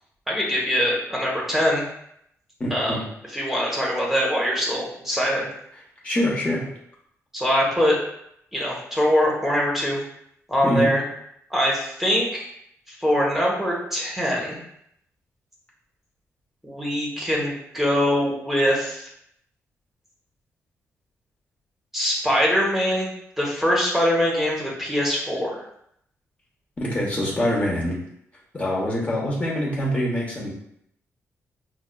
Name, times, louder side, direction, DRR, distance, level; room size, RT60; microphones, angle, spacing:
voice 1, 0.3-1.8 2.7-3.0 3.3-5.5 7.3-8.0 8.5-10.0 10.5-11.0 11.5-12.5 12.9-14.6 16.6-19.1 21.9-23.1 23.4-25.6, equal, 5° right, -4 dB, 0.9 m, -23 dB
voice 2, 2.6-3.0 6.0-6.6 10.6-10.9 26.8-28.0 28.5-30.6, left 1 dB, 25° left, -4 dB, 0.8 m, -24 dB
5.4 x 2.3 x 2.2 m, 0.74 s
cardioid pair, 110°, 5 cm